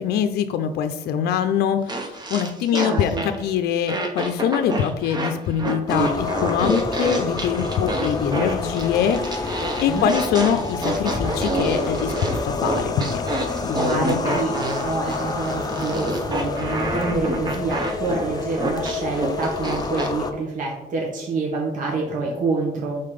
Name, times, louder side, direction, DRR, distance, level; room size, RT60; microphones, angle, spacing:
voice 1, 0.0-3.1 3.4-13.2 13.6-14.4, left 8 dB, 75° left, 8 dB, 0.5 m, -24 dB
sound 1, 1.9-3.5 3.9-20.1, right 1 dB, 25° right, 1.0 m, -28 dB
voice 2, 2.7-3.3 9.9-10.1 13.7-23.0, right 3 dB, 50° right, -2 dB, 1.6 m, -27 dB
sound 2, 5.9-20.3, left 4 dB, 25° left, 0.6 m, -29 dB
5.7 x 4.0 x 5.1 m, 0.86 s
cardioid pair, 110°, 17 cm